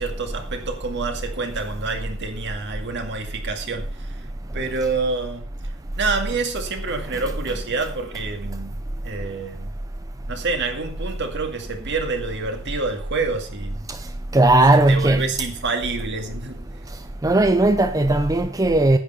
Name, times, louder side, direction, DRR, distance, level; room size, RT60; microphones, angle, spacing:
voice 1, 0.0-9.7 10.3-13.9 14.4-17.1, right 4 dB, 55° right, 2.1 m, -28 dB
voice 2, 14.3-15.2 17.2-19.0, right 2 dB, 15° right, 0.6 m, -16 dB
10.5 x 9.0 x 5.6 m
head